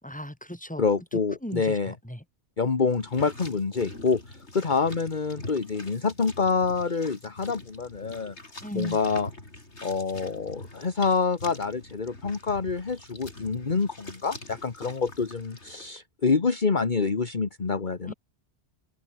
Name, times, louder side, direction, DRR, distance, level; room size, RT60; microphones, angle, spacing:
voice 1, 0.0-0.8 1.1-2.2 8.6-9.0 18.1-18.2, equal, 5° left, 5.3 m, -37 dB
voice 2, 0.8-1.9 2.6-8.3 8.7-9.3 9.8-18.1, left 4 dB, 45° left, 1.6 m, -27 dB
sound 1, 2.9-15.9, left 2 dB, 90° left, 5.4 m, -44 dB
open air
omnidirectional pair, 1.1 m